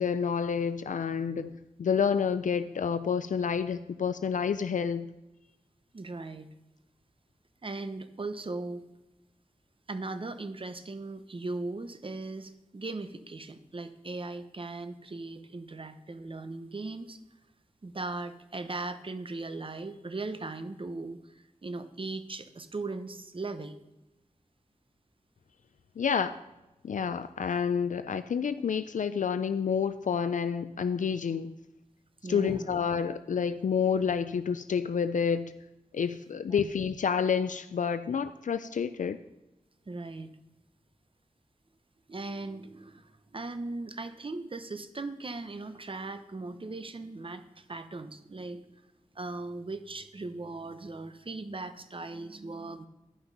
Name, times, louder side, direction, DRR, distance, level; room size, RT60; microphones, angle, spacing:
voice 1, 0.0-1.5 1.8-5.1 26.0-26.4 26.8-31.5 32.3-35.5 35.9-39.2, left 6 dB, 75° left, 12 dB, 0.4 m, -29 dB
voice 2, 5.9-6.5 7.6-8.8 9.9-17.2 17.8-23.8 32.2-32.7 36.5-36.7 39.9-40.4 42.1-48.6 49.1-52.9, right 3 dB, 40° right, 10 dB, 0.8 m, -38 dB
10.5 x 5.8 x 5.3 m, 0.97 s
wide cardioid pair, 70°, 13 cm